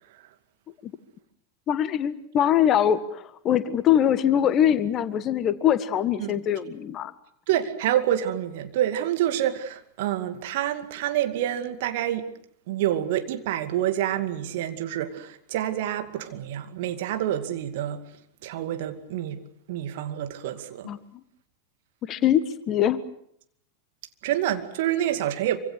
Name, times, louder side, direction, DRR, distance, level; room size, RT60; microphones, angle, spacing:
voice 1, 1.7-7.1 20.8-21.0 22.0-23.0, left 10 dB, 30° left, 1.4 m, -23 dB
voice 2, 7.5-12.2 12.7-18.0 18.4-19.4 19.7-20.9 24.2-25.6, right 12 dB, 50° right, 2.3 m, -27 dB
26.5 x 25.0 x 6.5 m
figure-of-eight pair, 90°, 0 cm